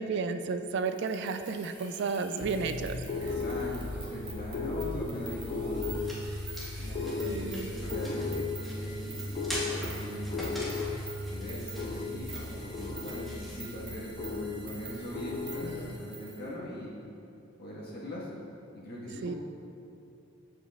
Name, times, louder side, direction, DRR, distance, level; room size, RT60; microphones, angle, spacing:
voice 1, 0.0-3.1 7.3-7.7 15.6-16.0 19.2-19.3, right 4 dB, 60° right, 9 dB, 0.4 m, -33 dB
sound 1, 0.8-16.4, right 3 dB, 20° right, 1.3 m, -48 dB
sound 2, 2.4-15.8, left 3 dB, 35° left, 0.3 m, -36 dB
voice 2, 3.2-6.1 6.8-10.4 11.3-16.9 17.6-18.3 18.7-19.4, equal, 55° left, -6 dB, 1.8 m, -41 dB
sound 3, 5.6-14.4, equal, ahead, 1.5 m, -44 dB
14.0 x 5.1 x 2.5 m, 2.7 s
head